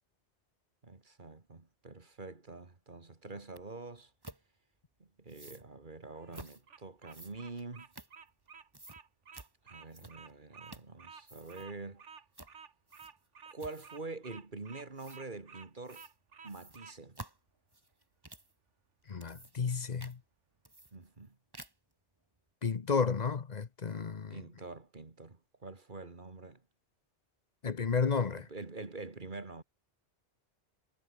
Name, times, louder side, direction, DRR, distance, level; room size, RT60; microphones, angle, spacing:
voice 1, 0.8-4.1 5.0-7.9 9.6-12.0 13.5-16.0 16.4-17.2 20.9-21.4 24.3-26.6 28.5-29.6, right 3 dB, 45° right, 2.3 m, -46 dB
sound 1, 3.6-3.7 4.2-4.4 5.3-5.7 6.3-6.6 7.1-8.5 8.7-9.0 9.3-9.5 9.9-10.3 10.7-11.0 11.2-11.7 12.3-12.6 12.9-13.3 13.6-14.0 15.0-15.2 15.9-16.1 16.5-18.5 19.0-19.7 20.0-20.2 20.6-21.3 21.5-21.9, right 2 dB, 20° right, 1.9 m, -51 dB
Bird vocalization bird call bird song, 6.1-17.0, right 6 dB, 85° right, 1.8 m, -53 dB
voice 2, 19.1-20.2 22.6-24.4 27.6-28.5, left 5 dB, 40° left, 0.9 m, -32 dB
omnidirectional pair, 1.2 m